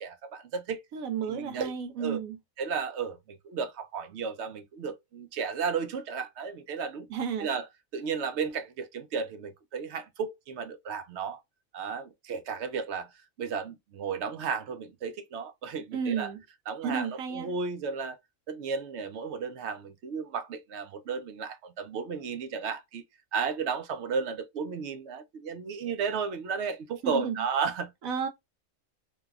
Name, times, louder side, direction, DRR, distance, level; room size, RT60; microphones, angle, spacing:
voice 1, 0.0-0.8 1.2-2.2 2.6-7.1 7.4-7.7 7.9-11.4 11.7-13.1 13.4-16.3 16.7-18.2 18.5-23.0 23.3-27.9, right 5 dB, 65° right, 0.7 m, -34 dB
voice 2, 0.9-2.4 7.1-7.5 15.9-16.4 16.8-17.5 27.0-27.3 28.0-28.3, right 6 dB, 85° right, 1.1 m, -32 dB
3.2 x 2.2 x 2.2 m
omnidirectional pair, 1.4 m